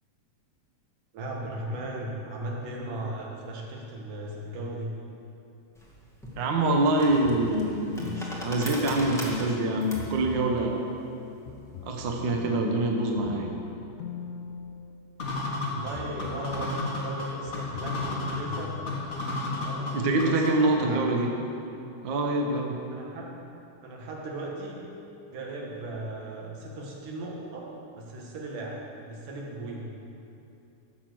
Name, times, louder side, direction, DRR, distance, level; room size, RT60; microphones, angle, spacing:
voice 1, 1.1-5.0 15.6-18.7 19.5-21.0 22.9-23.3 23.8-24.8 25.3-27.7 28.0-29.9, right 1 dB, 80° right, -2 dB, 3.2 m, -37 dB
sound 1, 5.7-12.4, equal, 5° left, 0.5 m, -40 dB
voice 2, 6.4-7.9 8.4-10.9 11.8-13.5 19.9-21.3 22.0-22.8, right 2 dB, 60° right, 1 dB, 1.2 m, -25 dB
sound 2, 7.2-9.5 9.9-10.8 11.5-15.6 15.9-16.8 17.5-19.2, left 7 dB, 80° left, 2.1 m, -42 dB
sound 3, 15.2-20.8, left 2 dB, 55° left, 0.9 m, -33 dB
14.5 x 6.8 x 6.2 m, 2.8 s
omnidirectional pair, 3.7 m